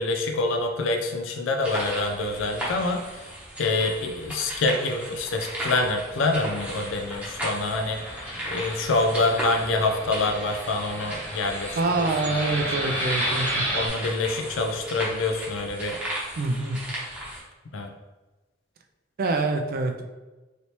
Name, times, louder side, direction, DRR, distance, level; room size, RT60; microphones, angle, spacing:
voice 1, 0.0-3.0 3.6-8.0 8.5-11.8 13.7-16.0 17.7-17.9, left 2 dB, 80° left, 4 dB, 0.4 m, -26 dB
sound 1, 1.6-17.4, right 1 dB, 5° right, 0.8 m, -36 dB
Fixed-wing aircraft airplane, 6.2-13.9, right 1 dB, 10° left, 0.6 m, -33 dB
voice 2, 11.8-13.6 16.4-16.8 19.2-20.0, right 3 dB, 50° right, 5 dB, 0.3 m, -25 dB
3.2 x 2.7 x 2.9 m, 1.2 s
head